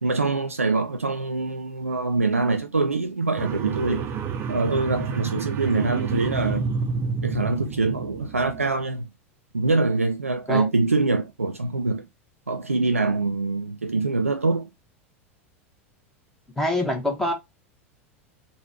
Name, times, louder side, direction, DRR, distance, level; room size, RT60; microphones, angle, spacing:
voice 1, 0.0-4.1 4.5-6.7 7.2-9.1 9.5-12.1 12.5-14.7, right 3 dB, 85° right, 0.4 m, -24 dB
sound 1, 3.4-8.7, right 5 dB, 30° right, 0.7 m, -29 dB
voice 2, 16.6-17.3, left 1 dB, 5° left, 1.2 m, -24 dB
3.8 x 2.4 x 4.2 m
figure-of-eight pair, 85°, 7 cm